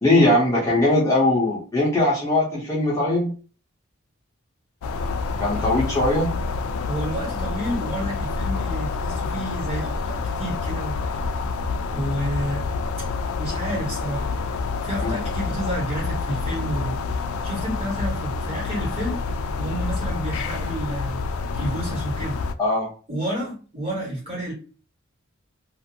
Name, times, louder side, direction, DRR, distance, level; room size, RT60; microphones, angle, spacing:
voice 1, 0.0-3.3 5.4-6.3 15.0-15.1 22.6-22.9, left 1 dB, 15° left, -6 dB, 0.7 m, -20 dB
sound 1, 4.8-22.5, left 4 dB, 85° left, 0.3 m, -28 dB
voice 2, 6.8-11.2 11.9-12.6 13.0-13.1 13.4-14.3 14.8-17.0 17.4-19.2 19.5-21.2 21.5-22.4 23.1-24.5, right 1 dB, 30° right, -4 dB, 1.5 m, -30 dB
2.5 x 2.5 x 2.8 m, 0.36 s
head